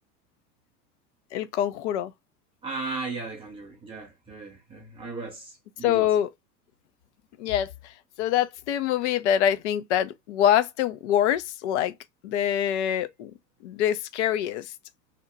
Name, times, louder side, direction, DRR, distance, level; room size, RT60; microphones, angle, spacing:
voice 1, 1.3-2.1 5.8-6.3 7.4-7.7 8.2-11.9 12.2-13.3 13.6-14.7, left 10 dB, 45° left, 0.5 m, -24 dB
voice 2, 2.6-6.1, right 3 dB, 10° right, 0.4 m, -36 dB
2.9 x 2.1 x 3.7 m
hypercardioid pair, 95°, 49 cm